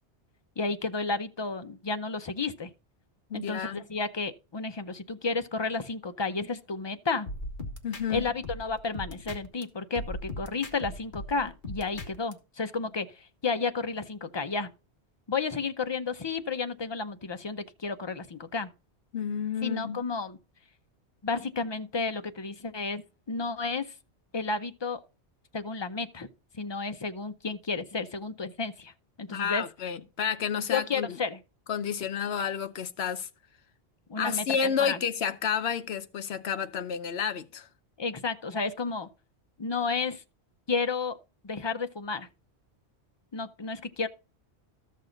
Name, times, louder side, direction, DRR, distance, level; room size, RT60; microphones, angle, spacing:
voice 1, 0.6-2.7 3.3-7.3 8.1-14.7 15.3-18.7 19.6-20.4 21.2-23.9 24.3-25.0 25.5-26.3 26.5-28.9 29.2-29.6 30.7-31.4 34.1-35.0 38.0-39.1 39.6-40.2 40.7-41.2 41.4-42.3 43.3-44.1, left 4 dB, 30° left, 0.5 m, -32 dB
voice 2, 3.3-3.8 7.8-8.2 19.1-20.0 29.3-31.2 31.7-33.3 34.2-37.7, left 7 dB, 65° left, 1.0 m, -30 dB
sound 1, 7.3-9.6 9.9-12.3, left 1 dB, 45° left, 1.6 m, -39 dB
13.0 x 6.4 x 3.9 m
omnidirectional pair, 1.2 m